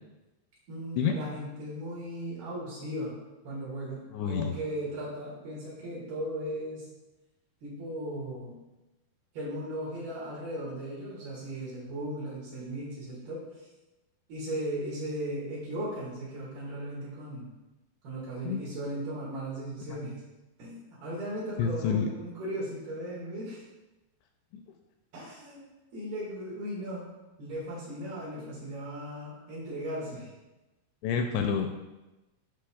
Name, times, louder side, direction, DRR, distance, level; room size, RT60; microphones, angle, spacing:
voice 1, 0.7-3.2 3.4-6.9 7.6-8.6 9.3-13.7 14.3-17.5 18.0-20.2 20.6-23.6 25.1-25.6 25.9-27.0 27.4-30.3, right 1 dB, 60° right, -7 dB, 3.5 m, -37 dB
voice 2, 4.1-4.5 18.4-18.6 21.6-22.1 24.5-24.6 31.0-31.7, left 7 dB, 85° left, 4 dB, 2.5 m, -28 dB
13.5 x 5.3 x 2.3 m, 1.1 s
omnidirectional pair, 5.2 m